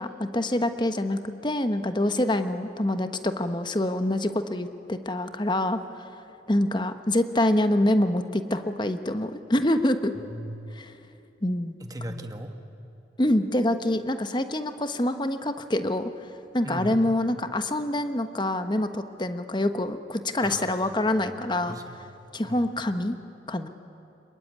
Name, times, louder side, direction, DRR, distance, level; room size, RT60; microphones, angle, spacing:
voice 1, 0.0-10.1 10.8-10.9 11.4-11.8 12.1-12.2 13.2-21.8 22.3-23.2 23.5-23.7, left 1 dB, 25° left, 9 dB, 1.1 m, -26 dB
voice 2, 10.2-10.6 11.8-12.5 16.6-17.0 20.4-21.2 21.7-22.6, right 1 dB, 20° right, 5 dB, 1.6 m, -39 dB
26.5 x 22.5 x 9.5 m, 2.9 s
head